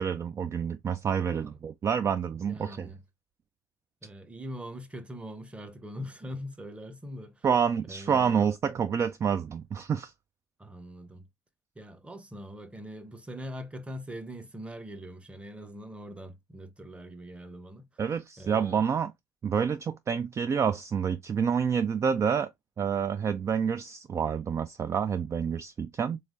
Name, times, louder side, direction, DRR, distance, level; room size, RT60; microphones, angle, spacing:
voice 1, 0.0-2.9 7.4-10.1 18.0-19.1 19.4-22.5 22.8-26.2, right 7 dB, 35° right, 0.3 m, -28 dB
voice 2, 2.4-3.0 4.0-7.5 7.9-8.4 10.6-11.2 11.7-17.9 18.4-18.8, equal, 15° right, 0.9 m, -42 dB
3.6 x 3.2 x 2.5 m
hypercardioid pair, 55°, 9 cm